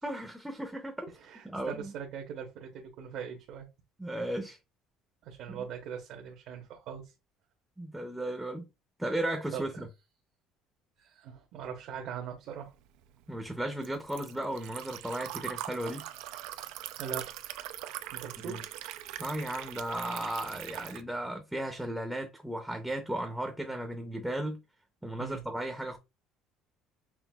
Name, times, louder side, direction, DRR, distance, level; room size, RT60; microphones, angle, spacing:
voice 1, 0.0-1.2 1.4-1.9 4.0-4.6 5.5-5.6 7.8-8.6 9.0-9.9 13.3-16.0 18.5-18.6 19.2-24.6 25.0-26.0, right 1 dB, 5° right, 0.6 m, -35 dB
voice 2, 1.2-3.7 5.2-7.1 9.5-9.9 11.0-12.7 17.0-17.3 18.1-18.7 25.2-25.4, right 7 dB, 60° right, 0.9 m, -41 dB
Liquid, 12.7-21.0, right 13 dB, 85° right, 0.4 m, -42 dB
5.8 x 2.5 x 2.3 m
cardioid pair, 165°, 0 cm